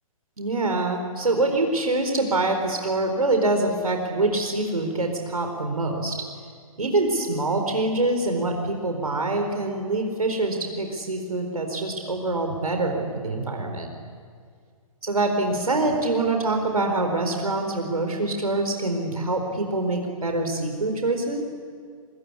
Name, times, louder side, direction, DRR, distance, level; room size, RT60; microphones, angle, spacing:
voice 1, 0.4-6.2 6.8-13.9 15.0-21.4, right 2 dB, 85° right, 4 dB, 4.4 m, -25 dB
25.0 x 22.5 x 9.9 m, 2.1 s
figure-of-eight pair, 135°, 18 cm